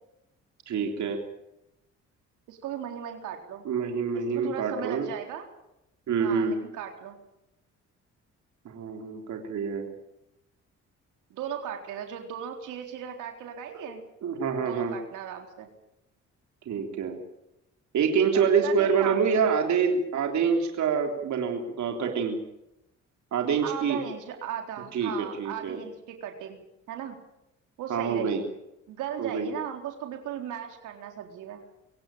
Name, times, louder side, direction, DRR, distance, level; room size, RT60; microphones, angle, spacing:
voice 1, 0.7-1.2 3.7-5.1 6.1-6.6 8.7-9.9 14.2-15.0 16.7-17.2 17.9-22.4 23.3-24.0 24.9-25.8 27.9-28.4 29.2-29.5, right 6 dB, 70° right, 3 dB, 3.5 m, -26 dB
voice 2, 2.5-3.6 4.1-5.5 6.2-7.2 11.3-14.0 14.6-15.7 18.3-19.2 23.6-26.6 26.9-27.2 27.8-28.5 28.9-31.6, right 9 dB, 85° right, 4 dB, 4.0 m, -37 dB
24.5 x 17.0 x 9.0 m, 0.87 s
cardioid pair, 90°, 30 cm